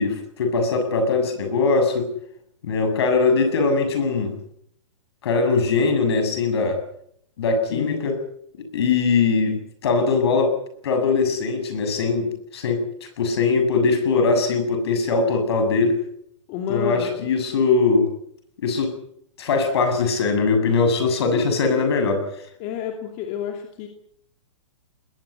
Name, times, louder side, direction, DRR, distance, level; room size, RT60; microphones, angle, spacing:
voice 1, 0.0-2.1 2.6-4.4 5.2-6.8 7.4-8.2 8.6-10.6 10.8-12.8 13.2-16.0 16.7-18.1 18.6-19.0 19.4-22.2, left 4 dB, 55° left, 8 dB, 7.3 m, -21 dB
voice 2, 7.7-8.1 16.5-17.2 22.6-23.9, left 9 dB, 25° left, 4 dB, 2.7 m, -29 dB
21.0 x 20.0 x 8.2 m, 0.70 s
hypercardioid pair, 170°, 16 cm